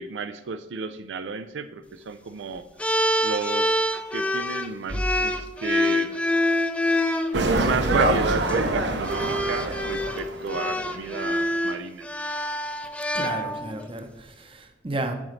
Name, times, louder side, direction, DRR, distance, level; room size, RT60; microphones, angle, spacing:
voice 1, 0.0-2.6 3.2-6.1 7.3-12.1, right 5 dB, 85° right, 10 dB, 0.4 m, -32 dB
sound 1, 2.8-7.3 8.3-8.5 9.0-13.9, left 1 dB, 5° left, 0.4 m, -26 dB
sound 2, 7.3-11.2 11.5-11.6, right 2 dB, 70° right, 0.8 m, -25 dB
voice 2, 13.1-15.1, right 2 dB, 30° right, 6 dB, 0.7 m, -33 dB
8.8 x 6.2 x 3.2 m, 0.94 s
head